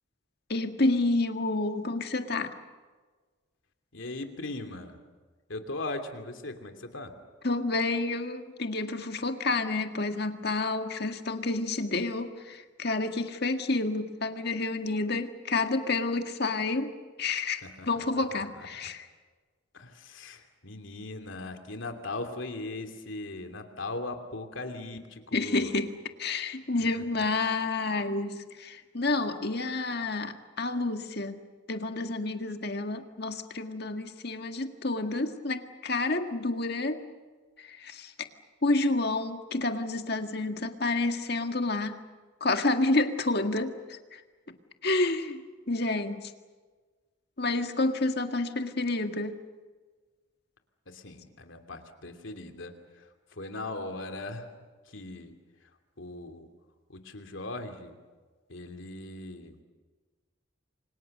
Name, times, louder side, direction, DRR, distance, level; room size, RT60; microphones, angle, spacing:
voice 1, 0.5-2.5 7.4-16.9 17.2-19.1 25.3-25.9 26.2-31.4 31.7-37.0 37.6-38.1 38.6-42.0 42.4-44.2 44.8-45.4 45.7-46.3 47.4-49.4, left 2 dB, 55° left, 6 dB, 1.8 m, -29 dB
voice 2, 3.9-5.0 5.5-7.1 17.6-18.7 19.7-25.7 27.2-27.3 50.9-54.5 54.9-55.3 56.0-56.5 56.9-57.9 58.5-59.6, left 2 dB, 75° left, 6 dB, 2.8 m, -39 dB
29.5 x 25.0 x 6.7 m, 1.4 s
head